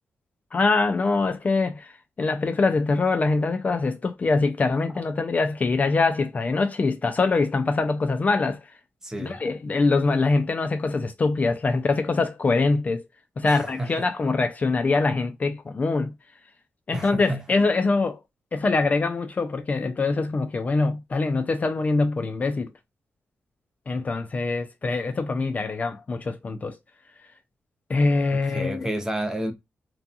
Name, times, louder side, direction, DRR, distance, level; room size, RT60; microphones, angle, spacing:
voice 1, 0.5-1.9 2.2-8.6 9.2-13.0 13.4-16.1 16.9-18.2 18.5-22.7 23.9-26.8 27.9-28.9, left 3 dB, 35° left, 0.3 m, -23 dB
voice 2, 9.0-9.4 13.4-13.9 16.9-17.4 28.3-29.5, right 1 dB, 10° right, 0.6 m, -30 dB
2.7 x 2.2 x 2.4 m
cardioid pair, 100°, 5 cm